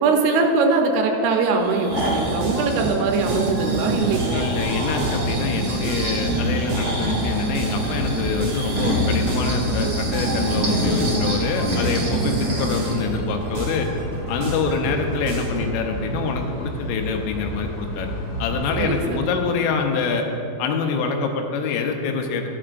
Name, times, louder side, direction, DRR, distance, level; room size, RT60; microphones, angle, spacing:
voice 1, 0.0-4.5 18.8-19.3, right 4 dB, 80° right, 2 dB, 3.3 m, -21 dB
Breathing, 1.6-13.0 13.5-13.6, right 1 dB, 40° right, 1.6 m, -26 dB
sound 1, 2.0-15.7, right 2 dB, 60° right, 2.5 m, -31 dB
sound 2, 3.5-19.1, equal, 50° left, 2.3 m, -32 dB
voice 2, 4.3-13.9 14.3-18.1 18.4-20.3 20.6-22.5, left 5 dB, 80° left, 4 dB, 3.2 m, -25 dB
13.0 x 11.0 x 2.5 m, 2.8 s
omnidirectional pair, 5.7 m